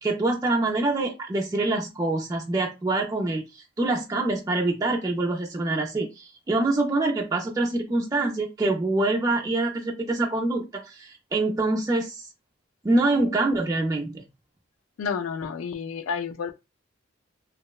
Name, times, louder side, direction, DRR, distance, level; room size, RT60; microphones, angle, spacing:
voice 1, 0.0-3.4 3.8-12.3 12.8-14.2, right 2 dB, 15° right, 0.3 m, -25 dB
voice 2, 15.0-16.5, left 6 dB, 90° left, 0.4 m, -30 dB
2.9 x 2.1 x 2.2 m
head